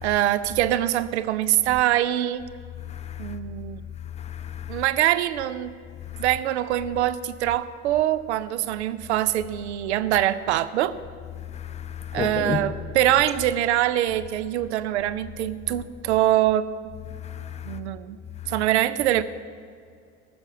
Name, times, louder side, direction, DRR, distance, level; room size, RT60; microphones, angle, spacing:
voice 1, 0.0-2.5 3.2-3.8 4.7-5.7 6.2-10.9 12.1-16.7 17.6-18.2 18.5-19.2, right 13 dB, 65° right, 0.6 m, -23 dB
voice 2, 2.9-3.4 4.2-4.8 6.1-6.2 11.5-12.6 17.2-17.8, left 7 dB, 20° left, 0.7 m, -33 dB
15.0 x 6.6 x 7.1 m
figure-of-eight pair, 60°, 36 cm